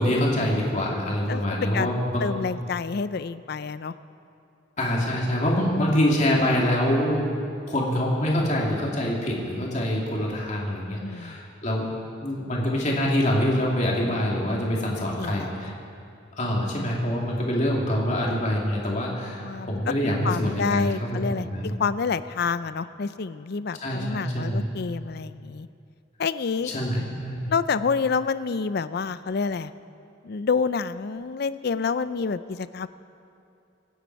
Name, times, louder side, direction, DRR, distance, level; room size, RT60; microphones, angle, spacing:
voice 1, 0.0-2.3 4.8-7.2 7.7-11.9 12.2-15.7 16.4-21.7 23.8-24.7 26.7-27.5, equal, 35° left, -3 dB, 2.6 m, -25 dB
voice 2, 1.3-1.9 2.2-3.9 11.0-11.4 14.5-14.8 15.2-15.7 19.3-19.8 20.2-25.7 26.2-26.7 27.5-29.7 30.2-32.9, left 5 dB, 55° left, 14 dB, 0.4 m, -28 dB
25.5 x 9.3 x 4.7 m, 2.6 s
head